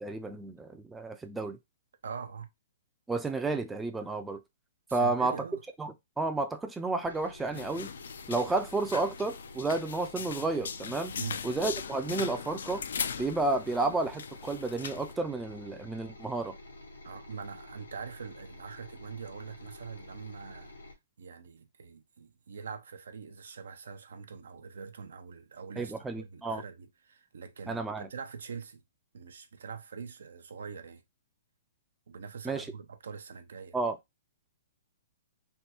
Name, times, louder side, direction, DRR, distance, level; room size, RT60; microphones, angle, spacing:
voice 1, 0.0-1.6 3.1-4.4 4.9-5.3 5.8-7.9 8.3-11.1 11.4-12.8 13.2-16.5 25.8-26.6 27.7-28.1 32.4-32.7 33.7-34.0, right 3 dB, 10° right, 0.4 m, -31 dB
voice 2, 2.0-2.5 4.9-5.6 11.1-11.4 17.0-20.7 21.2-28.8 29.1-31.0 32.1-33.8, right 6 dB, 75° right, 0.6 m, -43 dB
sound 1, 7.0-20.9, left 1 dB, 90° left, 1.1 m, -50 dB
sound 2, 7.5-15.1, left 6 dB, 70° left, 0.4 m, -39 dB
3.3 x 2.2 x 2.9 m
hypercardioid pair, 130°, 0 cm